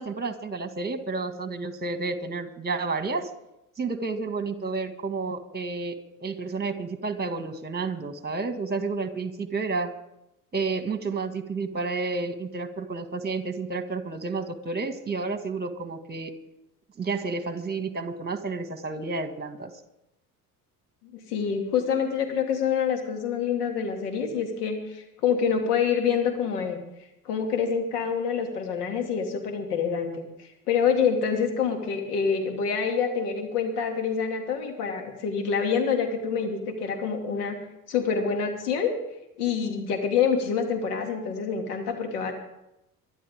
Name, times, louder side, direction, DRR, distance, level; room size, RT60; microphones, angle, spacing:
voice 1, 0.0-3.3 3.8-6.0 6.2-9.9 10.5-16.3 17.0-19.7, right 4 dB, 20° right, 8 dB, 2.1 m, -31 dB
voice 2, 21.1-26.8 27.2-37.6 37.9-38.9 39.4-42.3, left 6 dB, 80° left, 3 dB, 2.7 m, -26 dB
24.0 x 12.0 x 3.7 m, 0.87 s
hypercardioid pair, 60°, 46 cm